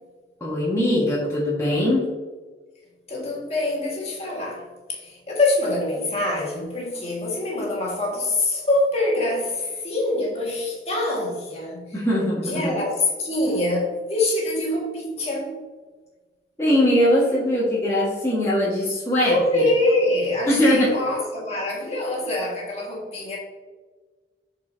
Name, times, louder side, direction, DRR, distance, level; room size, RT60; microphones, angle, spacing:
voice 1, 0.4-2.1 11.9-12.7 16.6-19.6 20.5-20.9, left 1 dB, 15° left, -7 dB, 1.3 m, -21 dB
voice 2, 3.1-4.6 4.9-11.9 12.4-15.5 19.2-23.4, left 2 dB, 35° left, -3 dB, 1.6 m, -24 dB
7.9 x 4.7 x 2.6 m, 1.4 s
head